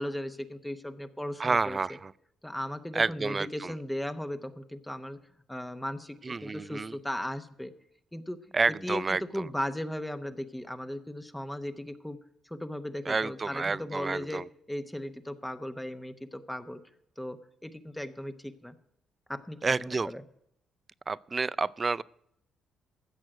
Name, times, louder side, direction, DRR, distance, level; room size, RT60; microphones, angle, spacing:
voice 1, 0.0-1.8 2.4-5.2 5.5-7.7 8.1-8.6 8.8-12.2 12.4-14.4 14.7-16.8 17.2-18.8 19.3-20.2, left 1 dB, 5° left, 0.9 m, -37 dB
voice 2, 1.4-2.1 2.9-3.7 6.2-7.0 8.5-9.5 13.1-14.5 19.6-20.1 21.1-22.0, right 4 dB, 30° right, 0.4 m, -29 dB
15.0 x 6.4 x 7.6 m
cardioid pair, 90°, 0 cm